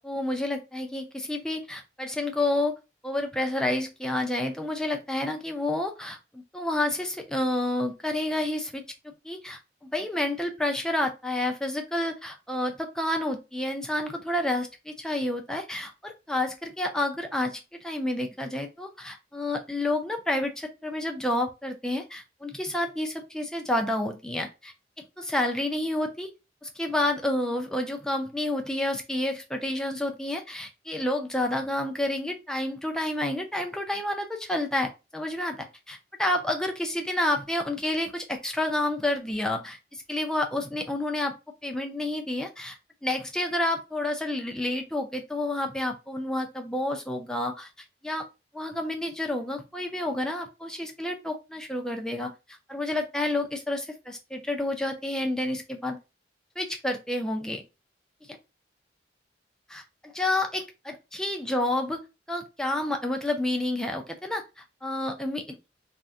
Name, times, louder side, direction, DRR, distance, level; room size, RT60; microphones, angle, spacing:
voice 1, 0.0-2.7 3.0-8.8 9.2-26.3 26.6-41.3 41.6-42.8 43.0-47.7 48.0-48.3 48.5-52.3 52.7-56.0 56.6-57.6 59.7-62.0 62.3-65.6, left 1 dB, 5° left, 3 dB, 0.4 m, -29 dB
2.6 x 2.1 x 3.5 m, 0.27 s
head